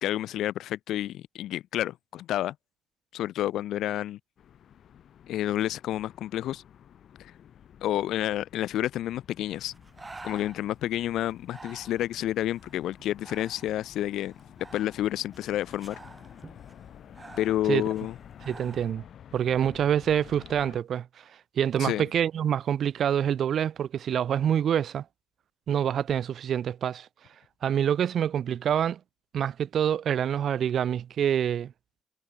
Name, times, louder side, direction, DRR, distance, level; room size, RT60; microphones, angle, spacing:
voice 1, 0.0-2.5 3.1-4.2 5.3-6.6 7.2-7.3 7.8-9.7 10.2-14.3 14.7-16.0 17.4-18.1 21.8-22.0, left 13 dB, 80° left, 1.3 m, -29 dB
sound 1, 4.4-20.8, left 9 dB, 65° left, 6.4 m, -51 dB
Breathing, 9.4-18.9, right 3 dB, 25° right, 4.2 m, -50 dB
voice 2, 18.5-19.0 19.3-21.2 21.6-25.0 25.7-27.1 27.6-29.0 29.3-31.7, right 9 dB, 65° right, 0.6 m, -26 dB
cardioid pair, 90°, 0 cm